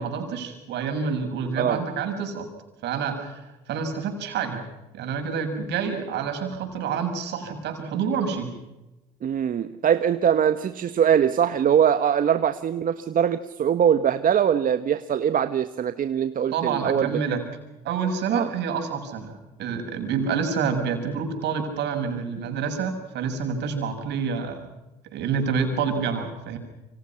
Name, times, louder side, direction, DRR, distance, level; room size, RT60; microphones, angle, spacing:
voice 1, 0.0-2.5 2.8-4.7 4.9-8.5 16.5-17.4 17.8-24.6 25.1-26.6, right 6 dB, 65° right, 5 dB, 6.6 m, -28 dB
voice 2, 9.2-17.4 18.3-18.5, right 8 dB, 50° right, 11 dB, 1.3 m, -22 dB
28.0 x 25.0 x 5.9 m, 1.0 s
hypercardioid pair, 70°, 19 cm